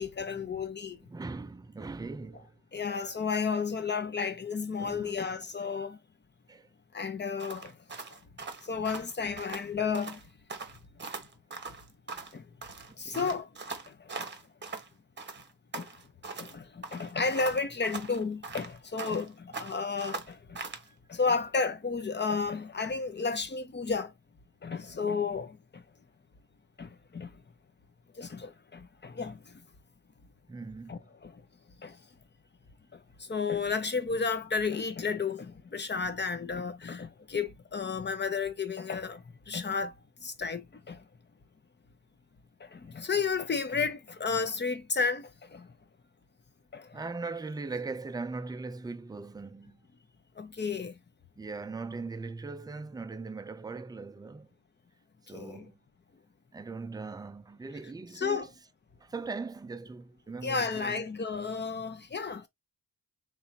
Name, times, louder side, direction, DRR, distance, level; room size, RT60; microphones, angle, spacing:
voice 1, 0.0-1.0 2.7-6.0 6.9-7.8 8.6-10.2 12.3-12.5 13.0-13.5 13.9-14.3 15.7-15.9 16.4-20.6 21.1-24.1 24.6-25.8 26.8-27.3 28.1-29.6 30.9-31.4 31.8-32.0 32.9-39.9 40.2-41.0 42.6-45.7 46.7-47.0 50.4-51.0 55.3-55.7 58.1-58.5 60.4-62.5, left 5 dB, 30° left, 0.8 m, -32 dB
voice 2, 0.9-2.6 4.8-5.2 6.5-6.7 13.0-13.4 20.8-21.0 30.5-31.1 46.9-49.8 51.4-54.5 55.2-55.8 56.5-58.5 59.0-61.0, right 3 dB, 10° right, 0.4 m, -40 dB
sound 1, 7.4-9.7 9.9-10.2 10.5-12.4 12.6-14.9 15.2-16.6 16.8-19.3 19.5-20.9, right 4 dB, 30° right, 1.0 m, -41 dB
3.6 x 3.3 x 2.8 m
cardioid pair, 90°, 34 cm